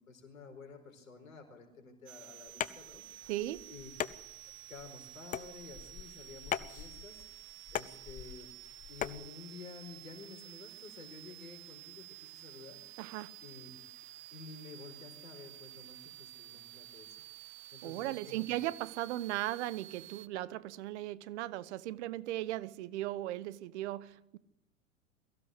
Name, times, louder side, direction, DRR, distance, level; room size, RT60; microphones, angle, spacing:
voice 1, 0.0-3.3 3.7-3.9 4.6-7.2 7.7-8.5 8.9-12.8 13.4-13.7 14.3-18.7, left 5 dB, 80° left, 4.8 m, -51 dB
sound 1, 2.1-20.3, right 16 dB, 30° right, 0.7 m, -51 dB
sound 2, 2.5-9.3, left 9 dB, 20° left, 0.7 m, -41 dB
voice 2, 3.3-3.7 13.0-13.3 17.8-24.4, right 15 dB, 55° right, 1.2 m, -37 dB
23.0 x 16.0 x 8.0 m
hypercardioid pair, 95°, 40 cm